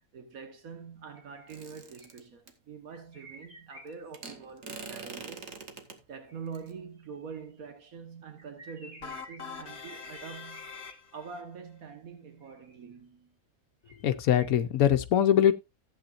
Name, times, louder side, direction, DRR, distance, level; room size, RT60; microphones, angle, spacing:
voice 1, 0.0-5.6 6.1-10.8 11.1-13.3, right 6 dB, 85° right, 1.8 m, -45 dB
sound 1, 1.1-2.2 2.9-4.4 6.2-7.6 8.4-11.0 12.4-13.0 13.9-14.5, equal, 45° right, 3.6 m, -53 dB
sound 2, 1.5-2.5 4.1-6.0 6.5-6.7, right 4 dB, 65° right, 1.8 m, -43 dB
sound 3, 9.0-11.4, left 5 dB, 50° left, 1.4 m, -43 dB
voice 2, 14.0-15.5, left 10 dB, 85° left, 1.3 m, -22 dB
14.5 x 8.6 x 2.5 m
omnidirectional pair, 1.5 m